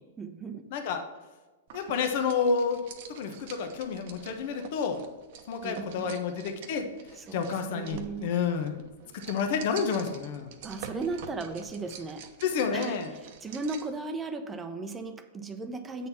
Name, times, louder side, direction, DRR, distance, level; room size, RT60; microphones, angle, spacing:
voice 1, 0.2-0.7 5.6-6.2 7.1-8.3 10.6-12.3 12.7-16.1, right 3 dB, 15° right, 8 dB, 0.7 m, -36 dB
voice 2, 0.7-1.0 1.7-2.8 3.1-5.0 5.5-6.9 7.3-8.7 9.3-10.5 12.4-13.1, left 5 dB, 60° left, 5 dB, 1.0 m, -29 dB
sound 1, 1.7-14.0, right 7 dB, 60° right, 0.9 m, -47 dB
8.2 x 4.2 x 5.7 m, 1.2 s
hypercardioid pair, 115°, 0 cm